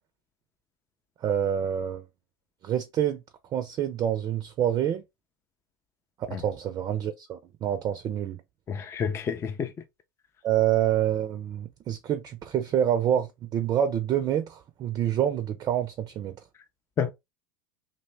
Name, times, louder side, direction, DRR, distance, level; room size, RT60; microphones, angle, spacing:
voice 1, 1.2-2.0 2.6-3.2 3.5-5.0 6.4-8.4 10.4-13.3 13.5-16.3, right 10 dB, 35° right, 0.4 m, -27 dB
voice 2, 8.7-9.7 17.0-17.1, left 7 dB, 25° left, 0.4 m, -29 dB
2.6 x 2.1 x 3.2 m
hypercardioid pair, 80°, 11 cm